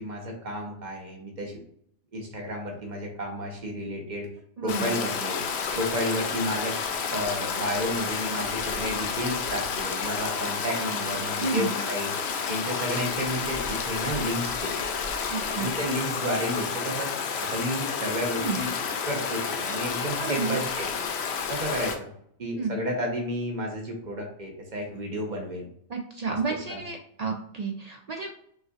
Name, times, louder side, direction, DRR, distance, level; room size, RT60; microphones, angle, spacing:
voice 1, 0.0-1.5 2.1-4.3 4.6-5.4 5.7-6.8 7.1-12.1 12.5-14.8 15.6-17.1 17.4-18.7 19.1-20.9 21.5-22.1 22.4-25.6 26.3-26.4 26.7-26.8, equal, 40° right, 0 dB, 1.1 m, -31 dB
voice 2, 4.6-5.0 11.4-11.8 15.3-15.7 18.4-18.6 20.2-20.6 22.6-22.8 25.9-28.3, right 4 dB, 65° right, 2 dB, 0.3 m, -31 dB
Stream, 4.7-22.0, left 6 dB, 70° left, 0.8 m, -30 dB
5.9 x 2.6 x 2.4 m, 0.67 s
omnidirectional pair, 1.2 m